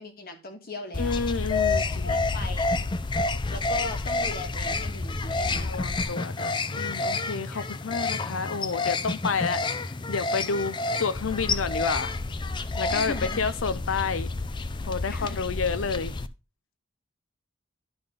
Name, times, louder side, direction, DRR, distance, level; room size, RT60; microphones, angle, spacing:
voice 1, 0.0-1.2 2.0-2.8 3.5-5.9 7.5-7.7 12.9-13.4 15.1-15.5, left 3 dB, 50° left, 1.7 m, -38 dB
sound 1, 0.9-16.3, left 3 dB, 25° left, 0.4 m, -29 dB
voice 2, 1.0-2.2 5.5-12.1 12.8-14.3 14.9-16.1, left 5 dB, 85° left, 0.6 m, -30 dB
11.0 x 3.9 x 5.3 m
head